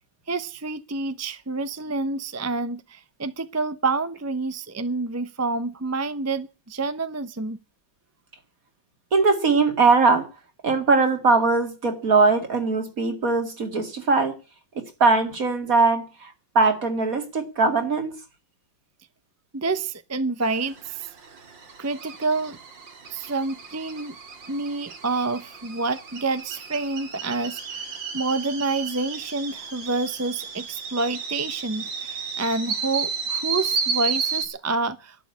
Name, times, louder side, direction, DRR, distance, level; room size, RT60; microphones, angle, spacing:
voice 1, 0.3-7.6 19.5-21.1 21.8-22.6 23.1-24.1 24.5-35.3, right 3 dB, 20° right, 0.4 m, -28 dB
voice 2, 9.1-10.3 10.6-14.4 14.8-18.2, right 3 dB, 50° right, 2.5 m, -21 dB
sound 1, 20.4-34.5, right 5 dB, 85° right, 2.9 m, -33 dB
12.0 x 9.0 x 9.6 m
omnidirectional pair, 2.0 m